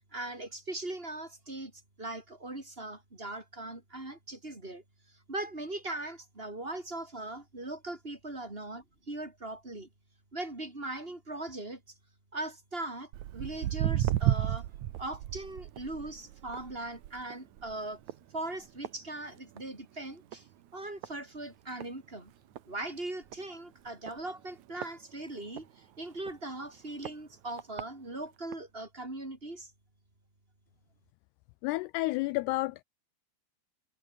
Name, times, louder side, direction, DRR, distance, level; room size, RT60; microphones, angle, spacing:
voice 1, 0.1-1.7 2.0-4.8 5.3-9.9 10.3-11.8 12.3-14.7 15.0-18.0 18.3-20.5 20.7-22.3 22.7-29.7, right 2 dB, 15° right, 4.8 m, -40 dB
Walk footsteps, 13.1-19.8 20.1-20.5 21.0-21.1 21.8-21.9 22.3-22.4 22.6-22.7 23.2-23.4 24.1-25.7 26.2-26.3 27.1-27.2 27.6-27.8 28.5-28.6, right 13 dB, 90° right, 1.6 m, -33 dB
voice 2, 31.6-32.8, left 21 dB, 80° left, 2.4 m, -30 dB
omnidirectional pair, 5.0 m